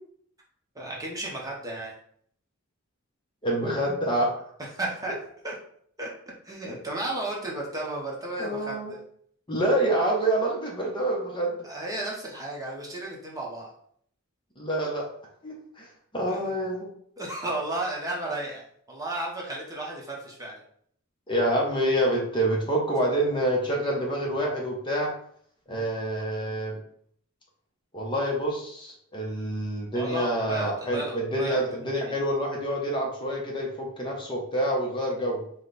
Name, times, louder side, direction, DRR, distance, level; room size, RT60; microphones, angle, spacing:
voice 1, 0.7-1.9 4.7-5.2 5.4-5.5 6.0-6.1 6.4-9.0 11.6-13.7 16.3-16.5 17.2-18.6 18.9-20.6 25.7-25.8 29.9-32.2, right 2 dB, 15° right, -3 dB, 0.8 m, -34 dB
voice 2, 3.4-4.3 8.4-8.9 9.5-11.5 14.6-15.1 15.4-15.9 16.1-16.9 21.3-25.1 25.7-26.8 27.9-35.4, right 1 dB, 20° left, -1 dB, 0.8 m, -27 dB
5.0 x 2.2 x 3.9 m, 0.63 s
head